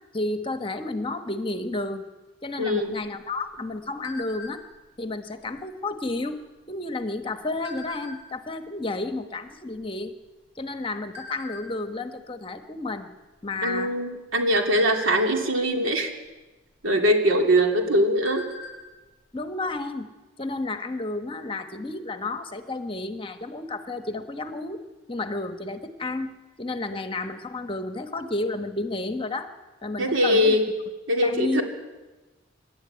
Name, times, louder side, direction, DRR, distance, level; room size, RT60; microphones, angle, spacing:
voice 1, 0.1-2.1 2.4-4.6 5.0-10.2 10.6-13.1 13.4-14.0 19.3-20.1 20.4-24.8 25.1-29.5 29.8-30.6 31.2-31.6, left 2 dB, 25° left, 7 dB, 1.2 m, -31 dB
voice 2, 2.6-3.0 13.6-16.1 16.8-18.5 30.0-30.6 31.1-31.6, equal, 80° right, 2 dB, 3.1 m, -22 dB
sound 1, 2.9-4.9 5.3-5.6 5.9-6.2 6.9-8.5 9.1-9.2 9.4-10.7 11.1-11.6 12.2-12.4 12.7-12.9 13.4-13.9 14.3-15.8 16.8-16.9 17.4-17.5 17.8-18.9 19.2-19.3 19.7-19.8, left 3 dB, 35° right, 6.1 m, -41 dB
26.0 x 12.0 x 9.7 m, 1.2 s
head